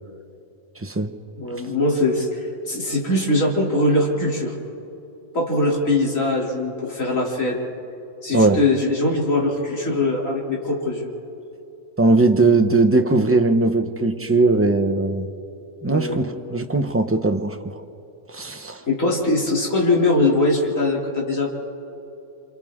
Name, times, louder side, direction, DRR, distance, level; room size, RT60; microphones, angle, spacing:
voice 1, 0.8-1.1 8.3-8.6 12.0-15.3 15.8-17.6 18.3-18.8, right 3 dB, 10° right, 6 dB, 0.8 m, -19 dB
voice 2, 1.4-4.6 5.3-7.6 8.2-11.1 15.9-16.2 18.9-21.5, left 2 dB, 85° left, -3 dB, 3.5 m, -21 dB
28.5 x 26.5 x 3.7 m, 2.7 s
omnidirectional pair, 1.3 m